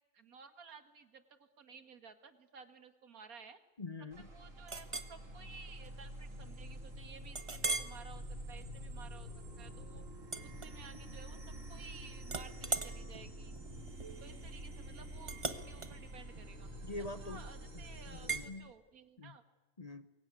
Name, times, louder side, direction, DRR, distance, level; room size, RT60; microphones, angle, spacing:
voice 1, 0.1-3.6 4.3-9.3 9.6-10.0 10.4-13.6 14.2-16.7 17.2-19.4, right 5 dB, 80° right, 9 dB, 2.1 m, -55 dB
voice 2, 3.8-4.3 16.8-17.5 17.7-18.7 19.2-19.4 19.8-20.1, left 2 dB, 30° left, 11 dB, 0.9 m, -45 dB
sound 1, 4.1-18.5, equal, 60° right, 3.2 m, -48 dB
Chink clink, 4.7-5.2 5.7-5.9 6.3-6.4 7.3-8.0 8.5-8.8 10.2-11.2 11.5-11.9 12.2-17.4 18.3-18.5, right 3 dB, 25° right, 1.1 m, -40 dB
24.5 x 22.5 x 9.6 m, 1.2 s
omnidirectional pair, 1.5 m